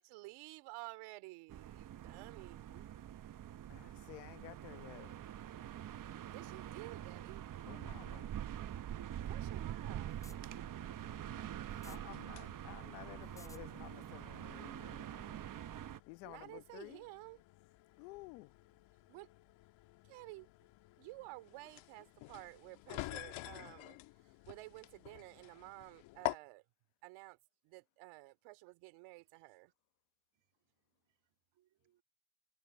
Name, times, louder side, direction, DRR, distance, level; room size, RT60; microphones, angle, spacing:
voice 1, 0.0-2.9 6.3-7.4 9.3-10.2 16.2-17.4 19.1-19.3 20.0-20.5 21.0-24.0 24.5-26.6 27.0-27.4 27.6-29.7, right 23 dB, 80° right, 3.1 m, -52 dB
sound 1, 1.5-16.0, right 11 dB, 40° right, 1.1 m, -45 dB
voice 2, 3.7-5.2 7.7-8.3 11.8-15.4 16.1-17.0 18.0-18.5, left 24 dB, 85° left, 1.1 m, -53 dB
sound 2, 9.2-26.4, left 20 dB, 70° left, 1.4 m, -50 dB
sound 3, 10.1-10.4 11.7-12.0 13.2-13.6, left 2 dB, 5° left, 0.5 m, -56 dB
voice 3, 24.1-24.5 28.7-28.8 29.3-29.5 31.1-31.2 31.5-32.0, right 13 dB, 60° right, 1.9 m, -79 dB
supercardioid pair, 85°, 49 cm